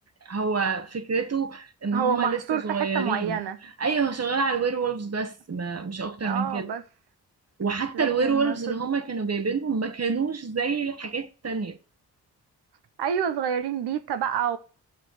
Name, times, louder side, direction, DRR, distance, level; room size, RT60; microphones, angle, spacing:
voice 1, 0.2-3.4 3.8-6.7 7.6-11.8, right 5 dB, 40° right, 1.2 m, -27 dB
voice 2, 1.9-3.6 6.2-6.8 7.9-8.8 13.0-14.6, right 8 dB, 90° right, 0.9 m, -28 dB
7.7 x 5.9 x 6.2 m
supercardioid pair, 50°, 39 cm